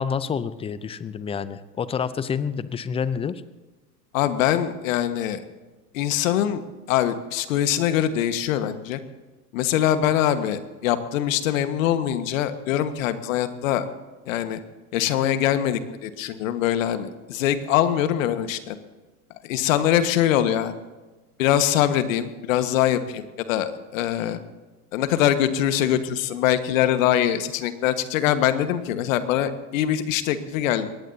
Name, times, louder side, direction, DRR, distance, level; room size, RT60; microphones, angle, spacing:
voice 1, 0.0-3.4, left 6 dB, 15° left, 15 dB, 0.6 m, -28 dB
voice 2, 4.1-5.4 5.9-6.6 6.9-9.0 9.5-13.9 14.3-14.6 14.9-18.8 19.4-20.7 21.4-24.4 24.9-30.9, left 11 dB, 60° left, 10 dB, 1.6 m, -23 dB
22.5 x 18.0 x 2.8 m, 1.2 s
hypercardioid pair, 105°, 46 cm